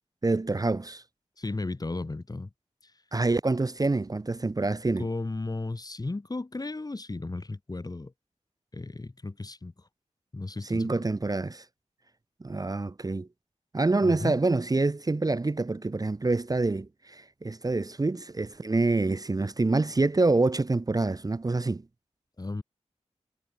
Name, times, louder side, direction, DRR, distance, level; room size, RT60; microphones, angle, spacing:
voice 1, 0.2-1.0 3.1-5.1 10.6-11.6 12.4-13.3 13.7-21.8, right 3 dB, 30° right, 0.7 m, -26 dB
voice 2, 1.4-2.5 5.0-8.1 8.7-9.7 10.3-11.0 14.0-14.3 22.4-22.6, left 2 dB, 30° left, 1.2 m, -34 dB
wide cardioid pair, 60°, 12 cm